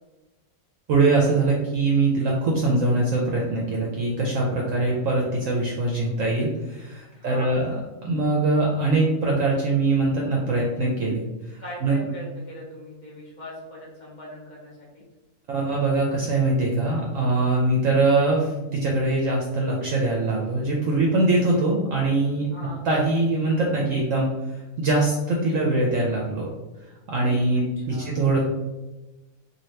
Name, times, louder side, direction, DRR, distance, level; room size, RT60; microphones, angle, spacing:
voice 1, 0.9-7.7 8.0-12.0 15.5-22.5 22.8-26.5 27.1-28.4, right 2 dB, 65° right, -2 dB, 0.8 m, -23 dB
voice 2, 7.1-7.6 11.6-15.0 22.5-22.8 27.5-28.2, left 1 dB, 45° left, -4 dB, 0.6 m, -40 dB
2.8 x 2.6 x 3.1 m, 1.1 s
omnidirectional pair, 1.7 m